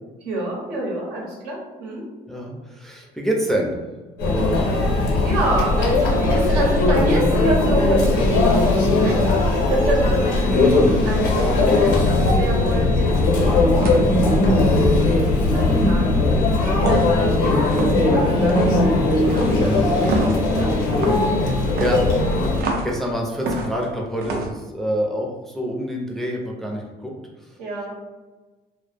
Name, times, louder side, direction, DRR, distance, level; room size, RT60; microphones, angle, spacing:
voice 1, 0.2-2.0 5.2-10.5 11.0-12.1 12.4-14.7 15.5-16.1 16.6-20.7 27.6-28.0, right 1 dB, 90° right, -4 dB, 0.9 m, -27 dB
voice 2, 2.3-3.8 4.2-4.6 10.4-10.8 19.6-20.0 21.4-22.0 22.8-27.1 27.5-27.6, equal, ahead, -2 dB, 0.4 m, -26 dB
Conversation / Chatter / Crowd, 4.2-22.6, left 2 dB, 85° left, 0.6 m, -18 dB
sound 1, 13.0-13.3 13.8-14.1 14.7-15.0 16.8-17.2 17.6-18.0 18.5-18.8 19.3-19.6 20.1-20.4 20.9-21.3 21.8-22.9 23.5-23.9 24.2-24.5, right 2 dB, 65° right, 0.5 m, -26 dB
2.0 x 2.0 x 3.2 m, 1.2 s
cardioid pair, 110°, 17 cm